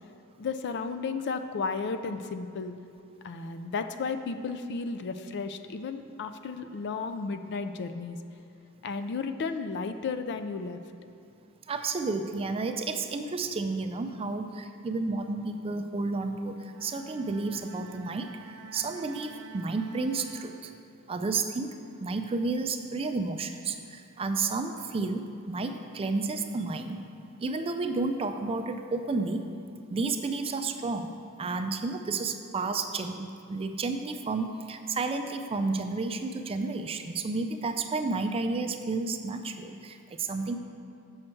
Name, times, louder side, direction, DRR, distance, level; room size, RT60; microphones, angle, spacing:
voice 1, 0.4-2.7 3.2-8.2 8.8-10.8, left 4 dB, 50° left, 9 dB, 0.4 m, -33 dB
voice 2, 11.7-20.7 21.1-27.0 27.4-29.5 29.9-40.6, right 3 dB, 25° right, 7 dB, 0.3 m, -31 dB
Bowed string instrument, 16.6-21.2, right 6 dB, 85° right, 0.6 m, -48 dB
7.5 x 6.4 x 4.4 m, 2.6 s
head